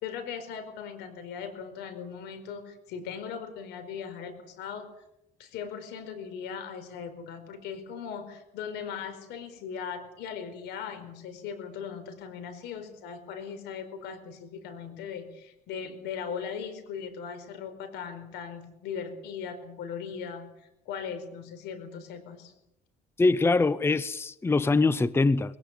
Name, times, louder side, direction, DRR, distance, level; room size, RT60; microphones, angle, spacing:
voice 1, 0.0-4.9 5.4-22.5, left 7 dB, 85° left, 4.7 m, -39 dB
voice 2, 23.2-25.6, left 3 dB, 15° left, 0.7 m, -23 dB
21.0 x 18.0 x 8.4 m
cardioid pair, 110°, 17 cm